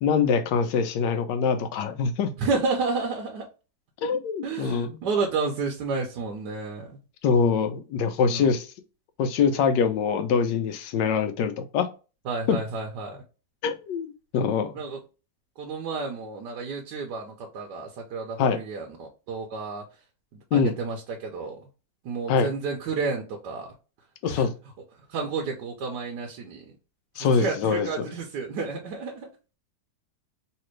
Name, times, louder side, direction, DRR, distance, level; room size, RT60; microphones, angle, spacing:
voice 1, 0.0-2.3 4.0-4.9 7.2-8.7 9.2-11.9 12.5-12.6 13.6-14.7 18.4-18.6 20.5-20.7 22.3-22.5 24.2-24.5 27.2-28.1, left 6 dB, 90° left, 9 dB, 1.3 m, -24 dB
voice 2, 2.4-3.5 4.4-7.0 8.3-8.5 12.3-13.2 14.7-15.0 15.6-19.8 20.5-21.6 22.0-23.7 24.3-24.5 25.1-26.6 27.2-29.3, right 4 dB, 80° right, 1 dB, 1.3 m, -31 dB
3.3 x 2.9 x 3.0 m, 0.32 s
omnidirectional pair, 1.8 m